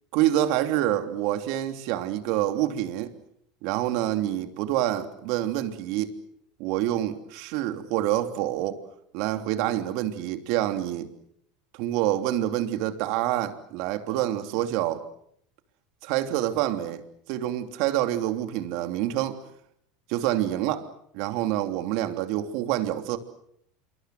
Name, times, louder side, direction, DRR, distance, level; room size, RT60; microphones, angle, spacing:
voice 1, 0.1-3.1 3.6-6.1 6.6-8.8 9.1-11.1 11.7-15.0 16.0-17.0 17.3-19.4 20.1-20.9 21.1-23.2, right 13 dB, 65° right, 7 dB, 3.1 m, -27 dB
27.5 x 24.0 x 7.8 m, 0.71 s
hypercardioid pair, 95°, 0 cm